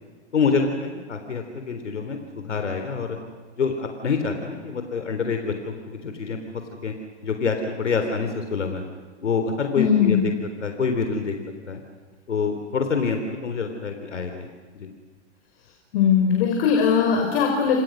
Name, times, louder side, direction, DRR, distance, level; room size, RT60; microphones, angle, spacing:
voice 1, 0.3-3.2 3.6-6.4 6.8-6.9 7.2-8.8 9.2-10.3 10.6-11.3 11.7-11.8 12.3-14.5 14.7-14.9, left 5 dB, 85° left, 5 dB, 3.7 m, -26 dB
voice 2, 9.8-10.3 15.9-17.8, left 7 dB, 55° left, 2 dB, 5.6 m, -19 dB
29.5 x 26.5 x 6.4 m, 1.5 s
hypercardioid pair, 115°, 35 cm